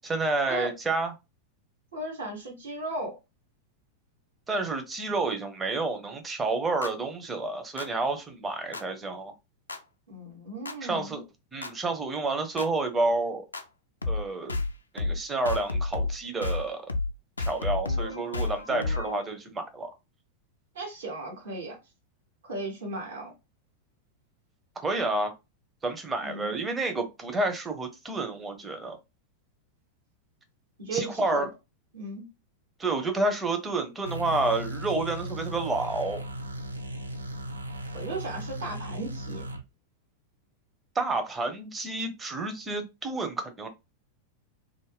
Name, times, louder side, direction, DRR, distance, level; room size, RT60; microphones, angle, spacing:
voice 1, 0.0-1.1 4.5-9.3 10.8-11.2 11.5-13.4 14.1-14.6 14.9-16.9 17.4-19.9 24.8-25.3 25.8-29.0 30.9-31.5 32.8-36.2 40.9-43.7, right 2 dB, 15° right, 0.6 m, -29 dB
voice 2, 1.9-3.2 10.1-11.2 20.7-21.8 22.4-23.3 26.2-26.6 30.8-31.5 31.9-32.3 37.9-39.4, right 2 dB, 65° right, 1.2 m, -36 dB
sound 1, 6.8-6.9 7.8-7.9 8.7-8.8 9.7-9.8 10.7-10.8 11.6-11.7 12.6-12.7 13.5-13.6 14.0-14.2 14.5-14.7 15.0-15.2 15.5-16.2 16.4-16.6 16.9-17.1 17.4-19.2, left 3 dB, 80° left, 0.3 m, -30 dB
sound 2, 34.0-39.6, right 1 dB, 80° right, 0.3 m, -37 dB
2.5 x 2.1 x 3.3 m
figure-of-eight pair, 90°, 0 cm